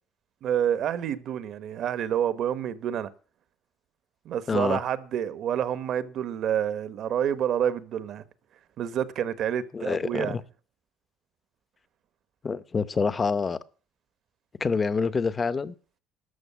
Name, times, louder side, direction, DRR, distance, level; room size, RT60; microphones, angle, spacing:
voice 1, 0.4-3.1 4.2-8.2 8.8-10.4, right 9 dB, 55° right, 1.0 m, -28 dB
voice 2, 4.5-4.8 9.7-10.4 12.4-13.6 14.6-15.7, left 5 dB, 25° left, 0.7 m, -26 dB
13.0 x 6.6 x 8.2 m
cardioid pair, 125°, 0 cm